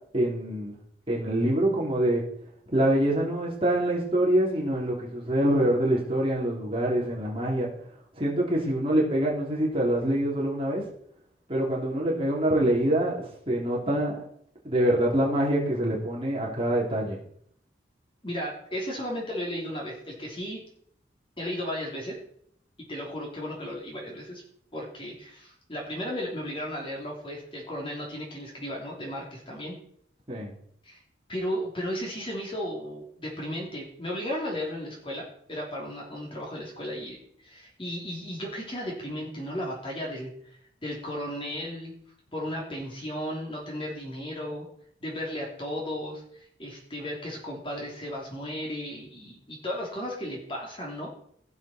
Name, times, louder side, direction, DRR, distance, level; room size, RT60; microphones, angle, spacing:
voice 1, 0.1-0.8 1.1-2.2 2.7-7.7 8.1-10.8 11.5-14.2 14.6-17.2 30.3-30.5, right 1 dB, 30° right, -4 dB, 3.2 m, -25 dB
voice 2, 18.2-20.6 21.4-22.2 22.9-24.4 24.7-29.7 30.8-31.0 31.3-35.2 35.5-40.3 40.8-41.9 42.3-44.7 45.0-51.1, equal, 30° left, -2 dB, 3.0 m, -35 dB
16.0 x 7.3 x 4.4 m, 0.67 s
head